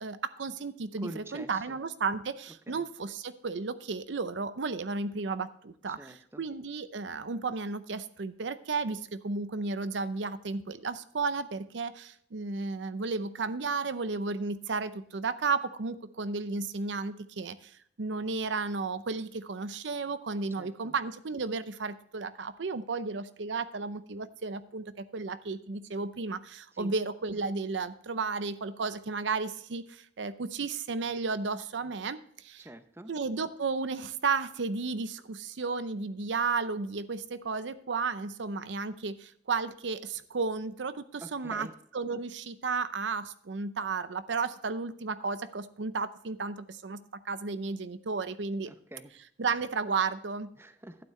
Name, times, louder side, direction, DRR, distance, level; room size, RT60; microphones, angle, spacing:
voice 1, 0.0-32.7 33.1-48.7 49.4-50.5, right 4 dB, 80° right, 13 dB, 0.6 m, -33 dB
voice 2, 1.0-1.8 2.7-2.8 6.0-6.4 20.6-20.9 26.8-26.9 32.6-33.1 41.2-41.7 48.6-49.1 50.6-51.0, right 1 dB, 15° right, 9 dB, 0.7 m, -45 dB
12.0 x 9.2 x 3.2 m, 0.65 s
head